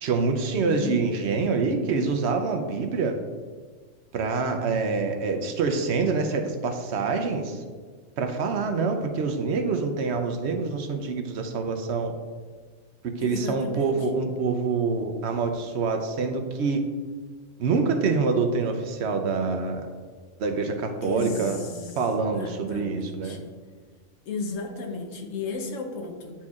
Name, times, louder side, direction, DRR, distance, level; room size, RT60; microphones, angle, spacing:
voice 1, 0.0-3.2 4.1-7.6 8.2-12.1 13.2-16.8 17.6-19.8 20.4-21.6 22.0-23.4, right 4 dB, 65° right, 6 dB, 0.8 m, -26 dB
voice 2, 0.6-1.1 13.2-14.2 21.0-22.0 22.3-23.5 24.3-26.3, left 3 dB, 90° left, 3 dB, 1.2 m, -34 dB
9.6 x 4.3 x 2.4 m, 1.5 s
omnidirectional pair, 1.3 m